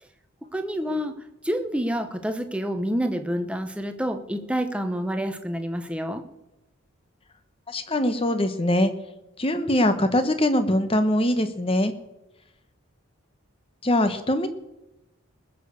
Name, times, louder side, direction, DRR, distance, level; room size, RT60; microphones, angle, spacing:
voice 1, 0.5-1.1 1.4-6.2, equal, 5° right, 7 dB, 0.9 m, -28 dB
voice 2, 7.7-8.9 9.4-11.9 13.8-14.5, left 1 dB, 25° left, 9 dB, 1.1 m, -22 dB
20.0 x 6.7 x 6.9 m, 0.97 s
head